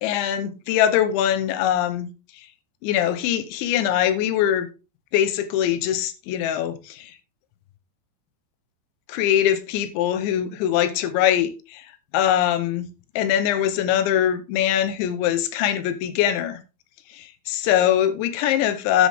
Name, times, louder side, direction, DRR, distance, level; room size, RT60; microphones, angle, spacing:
voice 1, 0.0-2.1 2.8-4.7 5.1-7.1 9.1-11.9 12.1-12.9 13.2-16.6 17.1-19.1, left 10 dB, 80° left, 3.0 m, -22 dB
9.8 x 8.0 x 3.5 m
omnidirectional pair, 5.6 m